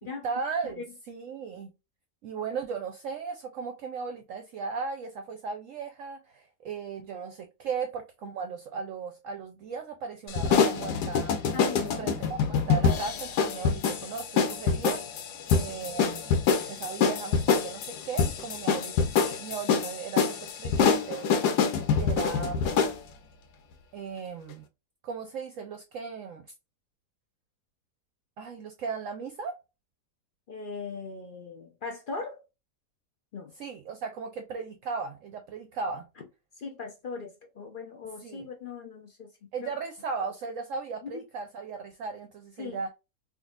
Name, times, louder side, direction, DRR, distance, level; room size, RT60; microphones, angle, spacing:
voice 1, 0.2-1.7 2.2-11.3 11.8-12.4 12.7-15.0 15.5-16.4 16.7-21.4 21.9-22.8 23.9-24.6 25.0-26.5 28.4-29.6 33.6-36.1 38.2-38.5 39.5-42.9, right 5 dB, 65° right, 0.8 m, -36 dB
sound 1, 10.3-23.0, left 6 dB, 85° left, 1.2 m, -26 dB
voice 2, 11.5-12.2 30.5-32.4 33.3-33.5 36.6-39.3 39.6-39.7 41.1-41.2 42.6-42.8, left 4 dB, 55° left, 0.5 m, -39 dB
3.7 x 2.6 x 2.4 m
omnidirectional pair, 1.7 m